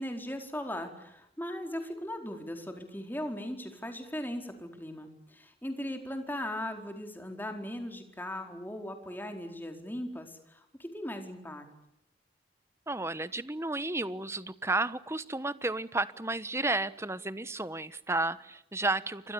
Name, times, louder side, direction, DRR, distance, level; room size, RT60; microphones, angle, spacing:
voice 1, 0.0-11.7, left 1 dB, 10° left, 4 dB, 4.5 m, -38 dB
voice 2, 12.9-19.3, right 2 dB, 15° right, 15 dB, 1.1 m, -32 dB
29.5 x 25.5 x 7.0 m, 0.81 s
head